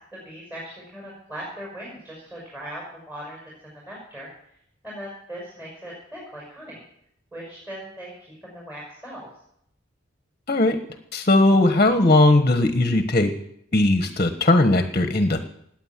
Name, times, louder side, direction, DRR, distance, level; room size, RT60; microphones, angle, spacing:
voice 1, 0.1-4.3 4.8-6.8 7.3-9.3, equal, 10° right, -4 dB, 6.3 m, -39 dB
voice 2, 10.5-10.8 11.1-13.3 13.7-15.4, left 2 dB, 35° left, 7 dB, 1.3 m, -18 dB
19.0 x 9.2 x 7.5 m, 0.73 s
head